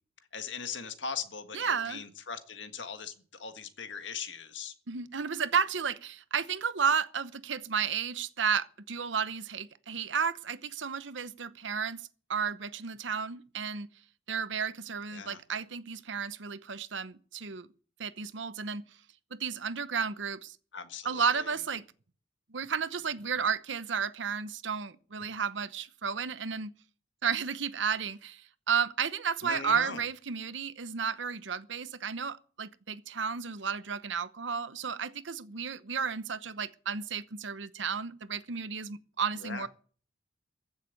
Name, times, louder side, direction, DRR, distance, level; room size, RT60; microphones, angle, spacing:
voice 1, 0.3-3.1 3.4-4.7 15.1-15.4 20.7-21.5 29.4-30.0 39.3-39.7, left 6 dB, 65° left, 1.7 m, -40 dB
voice 2, 1.5-2.0 4.9-12.0 12.3-13.9 14.3-17.7 18.0-18.9 19.4-20.6 21.0-21.8 22.5-26.7 27.2-39.7, right 6 dB, 70° right, 0.9 m, -32 dB
15.0 x 7.4 x 8.4 m
head